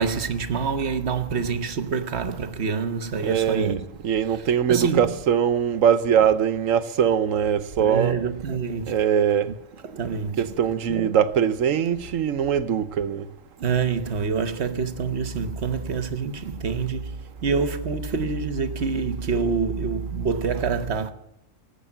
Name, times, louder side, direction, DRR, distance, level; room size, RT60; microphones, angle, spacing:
voice 1, 0.0-3.8 4.7-5.1 7.8-8.9 9.4-9.5 9.8-10.5 10.9-11.1 13.6-21.1, right 5 dB, 55° right, 1.3 m, -26 dB
voice 2, 3.2-8.1 8.9-9.5 10.4-13.3, right 8 dB, 75° right, 1.3 m, -22 dB
18.0 x 8.1 x 8.5 m
omnidirectional pair, 1.4 m